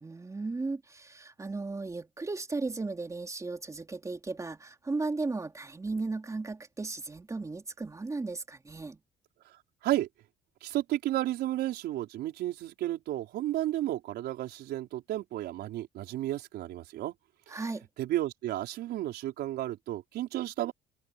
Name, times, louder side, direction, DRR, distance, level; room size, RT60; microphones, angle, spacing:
voice 1, 0.0-9.0 17.5-17.9, right 3 dB, 20° right, 3.3 m, -35 dB
voice 2, 10.6-17.1 17.5-17.6 18.0-20.7, right 14 dB, 75° right, 4.9 m, -32 dB
cardioid pair, 110°, 17 cm